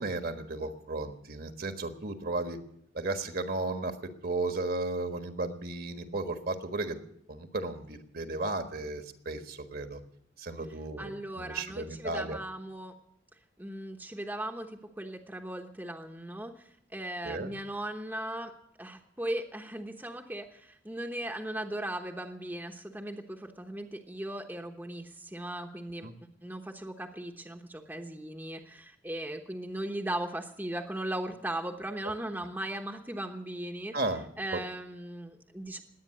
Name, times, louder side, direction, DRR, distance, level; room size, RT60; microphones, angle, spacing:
voice 1, 0.0-2.6 2.9-7.0 7.3-10.0 10.4-12.4 17.2-17.5 26.0-26.1 33.9-34.3 34.5-34.6, right 2 dB, 50° right, 7 dB, 1.5 m, -34 dB
voice 2, 11.0-12.9 13.6-18.5 18.8-26.1 26.4-34.0 34.4-35.8, right 1 dB, 10° right, 3 dB, 1.0 m, -38 dB
20.0 x 9.0 x 7.7 m, 0.72 s
head